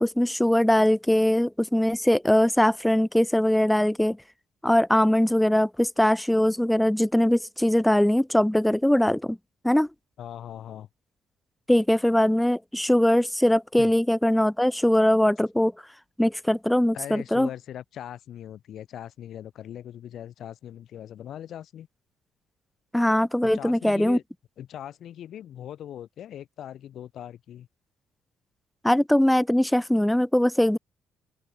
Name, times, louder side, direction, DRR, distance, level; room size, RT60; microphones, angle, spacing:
voice 1, 0.0-4.2 4.6-9.4 9.6-9.9 11.7-15.7 16.2-17.5 22.9-24.2 28.8-30.8, left 1 dB, 5° left, 0.9 m, -21 dB
voice 2, 10.2-10.9 13.8-13.9 16.9-21.9 23.4-24.2 24.6-27.7, left 10 dB, 60° left, 5.8 m, -40 dB
open air
hypercardioid pair, 50°, 0 cm